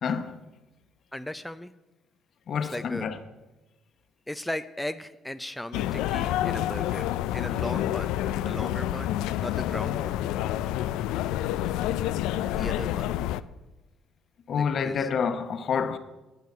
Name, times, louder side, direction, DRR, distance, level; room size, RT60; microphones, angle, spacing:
voice 1, 0.0-0.4 2.5-3.2 14.5-16.0, left 6 dB, 55° left, 0.9 m, -28 dB
voice 2, 1.1-1.7 2.6-3.1 4.3-8.2 8.4-10.2 12.5-13.2 14.5-15.1, left 1 dB, 5° left, 0.4 m, -37 dB
sound 1, 5.7-13.4, left 12 dB, 85° left, 0.4 m, -28 dB
9.5 x 7.7 x 6.7 m
cardioid pair, 90°, 0 cm